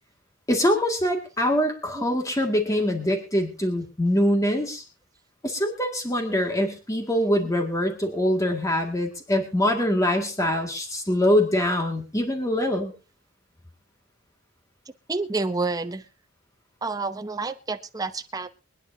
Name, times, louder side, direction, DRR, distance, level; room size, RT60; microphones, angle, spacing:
voice 1, 0.5-4.8 5.4-12.9, left 1 dB, 15° left, 3 dB, 2.1 m, -24 dB
voice 2, 15.1-16.1 16.8-18.5, right 3 dB, 20° right, 7 dB, 0.7 m, -29 dB
24.0 x 10.0 x 2.8 m, 0.31 s
head